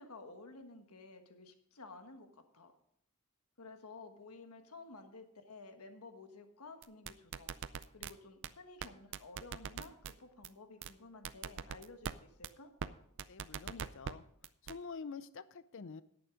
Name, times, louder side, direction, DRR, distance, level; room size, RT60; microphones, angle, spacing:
voice 1, 0.0-2.7 3.6-7.5 7.9-12.7, left 3 dB, 85° left, 7 dB, 1.4 m, -53 dB
sound 1, 6.8-8.1 8.4-8.5 8.8-8.9 9.1-10.1 10.4-10.5 10.8-10.9 11.2-12.1 12.4-12.5 12.8-12.9 13.2-14.1 14.4-14.7, right 7 dB, 55° right, 0.4 m, -41 dB
voice 2, 13.3-14.2 14.6-16.0, left 5 dB, 60° left, 16 dB, 0.5 m, -47 dB
10.5 x 8.8 x 5.0 m, 0.70 s
head